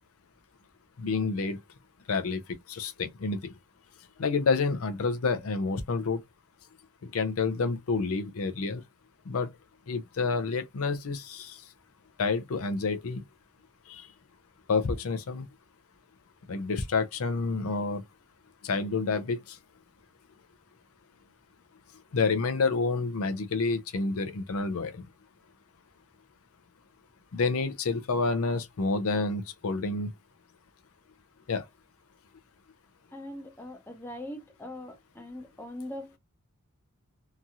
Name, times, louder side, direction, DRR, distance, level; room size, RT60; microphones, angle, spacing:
voice 1, 1.0-1.6 2.1-2.4 2.7-3.4 4.2-6.2 7.1-8.8 9.3-9.5 9.9-11.6 12.2-13.2 13.9-14.0 14.7-15.5 16.5-18.0 18.6-19.6 22.1-24.9 27.3-30.1 31.5-31.6, left 4 dB, 70° left, 0.5 m, -28 dB
voice 2, 33.1-36.2, left 1 dB, 10° left, 0.7 m, -41 dB
2.9 x 2.6 x 2.3 m
head